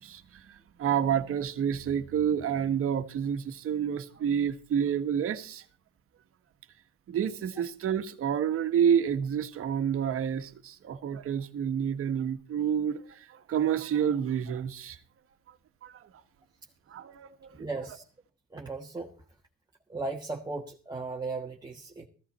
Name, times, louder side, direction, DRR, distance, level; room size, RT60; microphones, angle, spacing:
voice 1, 0.0-5.6 7.1-15.0 15.8-15.9 16.9-17.5, right 8 dB, 50° right, 1.5 m, -29 dB
voice 2, 17.6-18.0 18.5-19.1 19.9-22.1, right 3 dB, 15° right, 1.4 m, -36 dB
14.5 x 14.0 x 4.3 m
supercardioid pair, 95°, 30 cm